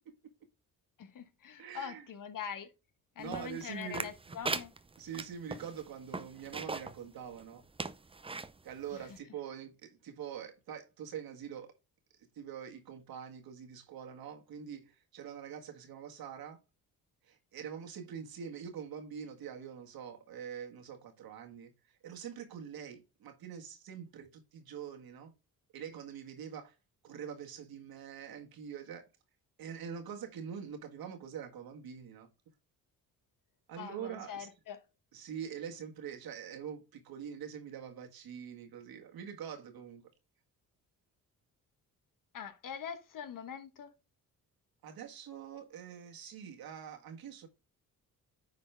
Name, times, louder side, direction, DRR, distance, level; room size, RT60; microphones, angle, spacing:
voice 1, 1.0-2.7 3.1-4.7 33.8-34.8 42.3-43.9, left 8 dB, 60° left, 1.3 m, -43 dB
voice 2, 1.6-2.1 3.2-4.4 5.0-7.6 8.6-11.7 12.1-16.6 17.2-25.3 25.7-26.8 27.0-29.1 29.6-32.3 33.7-34.5 35.1-40.0 44.8-47.5, right 8 dB, 75° right, 1.8 m, -44 dB
sound 1, 3.3-7.0 7.4-7.5 7.8-8.5 9.1-9.2, right 3 dB, 15° right, 0.6 m, -39 dB
9.5 x 4.2 x 3.4 m
supercardioid pair, 70°, 37 cm